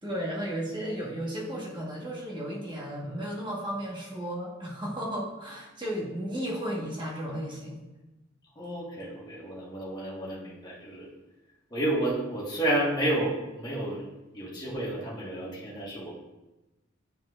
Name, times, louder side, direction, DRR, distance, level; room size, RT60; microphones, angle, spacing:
voice 1, 0.0-7.8, equal, 25° right, -4 dB, 1.3 m, -34 dB
voice 2, 8.5-11.1 11.7-14.0 14.3-16.1, right 1 dB, 20° left, -6 dB, 1.4 m, -31 dB
9.4 x 4.3 x 2.4 m, 1.0 s
head